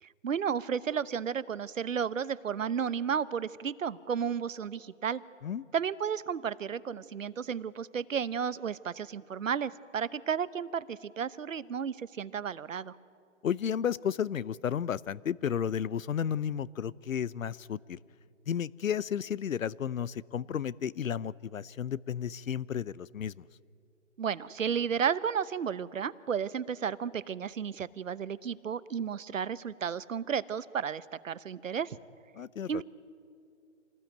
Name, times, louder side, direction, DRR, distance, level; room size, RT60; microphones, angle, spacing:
voice 1, 0.0-5.2 5.7-13.0 24.2-32.0 32.7-32.8, right 7 dB, 75° right, 17 dB, 1.0 m, -33 dB
voice 2, 13.4-18.0 18.5-23.4 32.3-32.8, left 8 dB, 90° left, 22 dB, 0.7 m, -33 dB
26.5 x 18.5 x 9.2 m, 2.4 s
hypercardioid pair, 170°, 39 cm